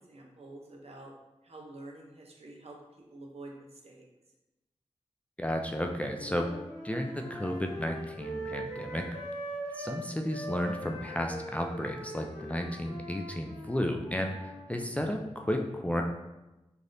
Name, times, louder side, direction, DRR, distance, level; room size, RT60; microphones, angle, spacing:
voice 1, 0.1-1.1 1.4-2.8 3.1-4.0, right 2 dB, 60° right, -1 dB, 0.7 m, -48 dB
voice 2, 5.4-6.5 6.8-9.1 9.7-16.0, equal, 10° left, 2 dB, 0.3 m, -33 dB
sound 1, 6.1-10.0 10.3-14.7, right 1 dB, 90° left, 1.0 m, -42 dB
3.3 x 2.5 x 2.6 m, 0.99 s
cardioid pair, 45°, 12 cm